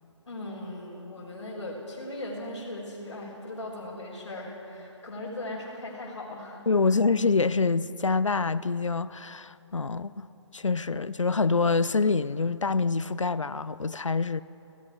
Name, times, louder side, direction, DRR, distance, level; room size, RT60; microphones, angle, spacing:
voice 1, 0.3-6.7, left 1 dB, 70° left, 5.9 m, -38 dB
voice 2, 6.7-10.1 10.5-14.4, left 4 dB, 90° left, 0.7 m, -26 dB
29.0 x 19.5 x 4.8 m
figure-of-eight pair, 150°, 16 cm